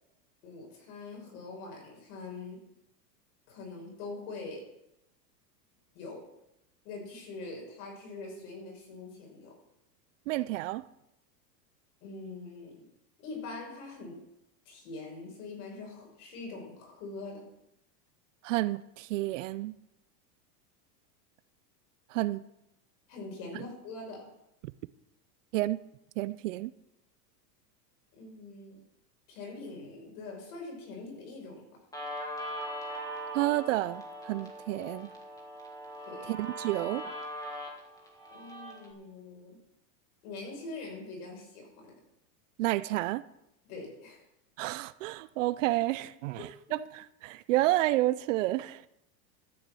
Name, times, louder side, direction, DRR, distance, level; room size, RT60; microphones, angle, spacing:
voice 1, 0.4-2.7 3.5-4.7 5.9-6.3 6.8-9.6 12.0-12.9 13.2-14.2 14.7-17.5 23.1-24.3 28.1-28.8 29.3-31.8 36.0-36.3 38.3-39.6 40.2-42.0 43.6-44.2 46.7-46.8, left 3 dB, 60° left, 5.7 m, -43 dB
voice 2, 10.3-10.8 18.4-19.8 22.1-22.4 24.6-24.7 25.5-25.8 26.2-26.7 33.3-35.1 36.3-37.1 42.6-43.2 44.6-48.8, right 17 dB, 50° right, 0.5 m, -30 dB
Guitar, 31.9-38.9, equal, 5° left, 2.2 m, -40 dB
13.0 x 7.0 x 7.6 m
supercardioid pair, 155°, 49 cm